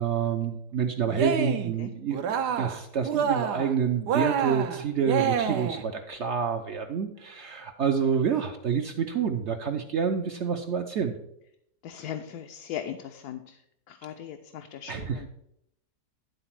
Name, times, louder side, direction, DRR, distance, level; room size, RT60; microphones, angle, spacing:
voice 1, 0.0-2.2 2.6-11.2 14.9-15.3, right 7 dB, 60° right, 5 dB, 0.8 m, -28 dB
Cheering, 1.1-1.7 2.1-2.8 3.0-3.7 4.1-5.8, right 7 dB, 85° right, 1.3 m, -27 dB
voice 2, 11.8-13.6 13.9-15.3, left 9 dB, 75° left, 4 dB, 1.1 m, -38 dB
11.0 x 4.0 x 5.9 m, 0.77 s
omnidirectional pair, 1.7 m